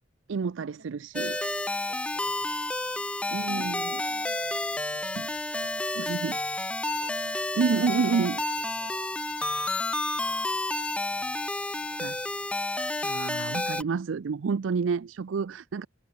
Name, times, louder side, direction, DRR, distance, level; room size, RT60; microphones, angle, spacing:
voice 1, 0.3-1.4 3.3-4.0 5.2-5.3 6.0-6.4 7.6-8.4 12.0-12.2 13.0-15.9, right 5 dB, 85° right, 0.4 m, -29 dB
sound 1, 1.1-13.8, left 2 dB, 5° left, 0.3 m, -30 dB
voice 2, 1.6-3.0 3.3-12.3 14.9-15.1, right 3 dB, 65° right, 4.0 m, -57 dB
head